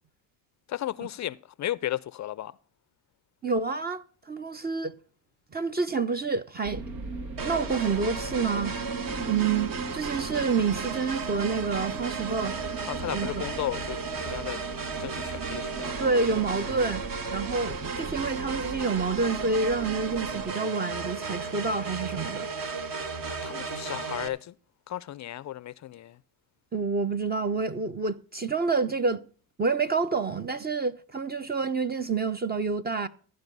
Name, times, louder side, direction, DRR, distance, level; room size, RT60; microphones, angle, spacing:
voice 1, 0.7-2.5 12.9-14.0 14.2-14.6 15.0-16.0 23.3-24.5 24.9-26.2, left 13 dB, 40° left, 0.5 m, -34 dB
voice 2, 3.4-4.9 5.5-6.8 7.4-8.7 9.3-12.6 13.1-13.4 16.0-22.5 26.7-29.2 29.6-33.1, right 4 dB, 20° right, 0.6 m, -28 dB
sound 1, 6.6-20.5, right 4 dB, 75° right, 1.9 m, -39 dB
sound 2, 7.4-24.3, right 4 dB, 45° right, 1.4 m, -34 dB
14.5 x 5.5 x 5.3 m
supercardioid pair, 85°, 47 cm